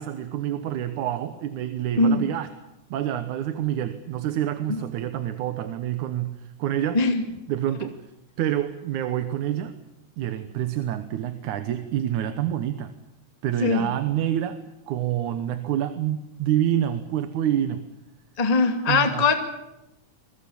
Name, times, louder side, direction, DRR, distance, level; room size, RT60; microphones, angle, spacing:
voice 1, 0.0-2.5 2.9-7.0 7.5-8.0 8.4-9.8 10.2-12.9 13.4-17.9 18.9-19.3, right 11 dB, 75° right, 10 dB, 2.4 m, -27 dB
voice 2, 18.4-19.3, left 3 dB, 15° left, 5 dB, 1.8 m, -21 dB
27.5 x 22.0 x 7.1 m, 0.90 s
omnidirectional pair, 3.6 m